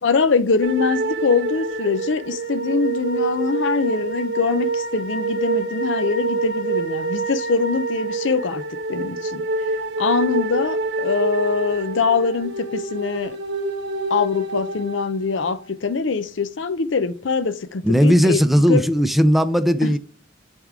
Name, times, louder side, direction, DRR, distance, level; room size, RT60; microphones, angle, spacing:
voice 1, 0.0-8.6 8.9-9.4 10.0-13.4 14.1-18.4 18.7-18.8 19.8-20.0, left 4 dB, 85° left, 0.6 m, -23 dB
sound 1, 0.6-15.7, right 3 dB, 75° right, 1.0 m, -26 dB
voice 2, 17.8-20.0, equal, ahead, 0.4 m, -17 dB
10.5 x 3.6 x 3.6 m
head